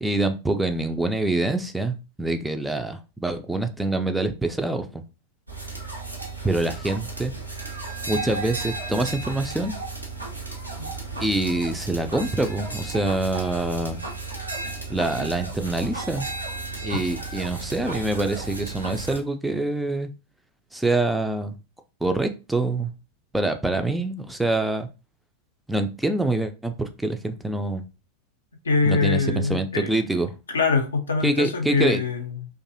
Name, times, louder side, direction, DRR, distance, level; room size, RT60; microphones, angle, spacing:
voice 1, 0.0-5.0 6.4-7.3 8.1-9.8 11.2-14.0 14.9-16.3 16.8-20.1 20.7-21.6 22.0-22.9 23.3-24.9 25.7-27.8 28.8-30.3 31.2-32.0, right 2 dB, 5° right, 0.3 m, -25 dB
sound 1, 5.5-19.2, right 3 dB, 90° right, 0.6 m, -34 dB
voice 2, 28.6-29.9 30.5-32.5, left 4 dB, 70° left, 0.4 m, -23 dB
2.6 x 2.3 x 2.6 m
figure-of-eight pair, 90°, 0 cm